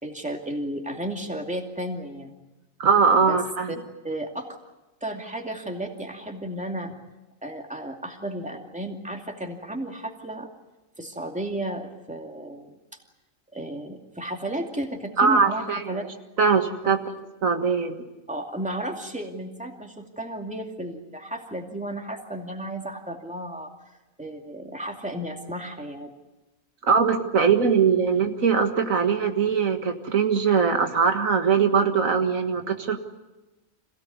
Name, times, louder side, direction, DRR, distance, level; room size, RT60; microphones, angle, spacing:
voice 1, 0.0-2.3 3.2-3.4 3.7-3.8 4.0-4.5 5.0-7.0 7.4-10.5 11.0-12.7 13.5-16.0 16.8-16.9 18.3-23.7 24.2-26.1, right 1 dB, 5° right, 3 dB, 2.5 m, -33 dB
voice 2, 2.8-3.8 15.2-16.0 16.4-17.0 17.4-18.0 26.9-33.0, right 6 dB, 80° right, 6 dB, 2.1 m, -21 dB
26.5 x 17.0 x 9.6 m, 1.0 s
omnidirectional pair, 1.4 m